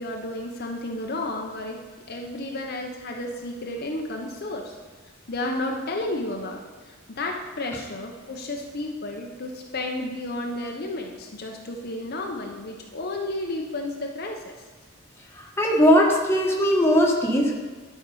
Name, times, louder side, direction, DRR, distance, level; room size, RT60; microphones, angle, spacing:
voice 1, 0.0-4.7 5.3-14.5, left 2 dB, 55° left, 1 dB, 0.9 m, -32 dB
voice 2, 15.6-17.5, equal, 15° left, -2 dB, 1.4 m, -19 dB
11.5 x 4.7 x 5.5 m, 1.4 s
head